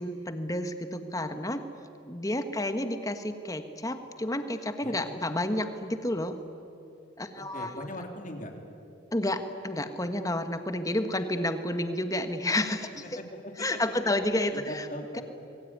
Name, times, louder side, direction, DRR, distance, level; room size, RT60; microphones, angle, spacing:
voice 1, 0.0-1.6 2.1-6.4 7.2-7.8 9.1-13.2 13.6-14.9 15.1-15.2, left 1 dB, 15° left, 8 dB, 1.5 m, -30 dB
voice 2, 4.8-5.1 7.4-8.5 13.1-13.5 14.5-15.2, left 1 dB, 40° left, 4 dB, 3.3 m, -40 dB
26.5 x 22.0 x 9.5 m, 2.8 s
head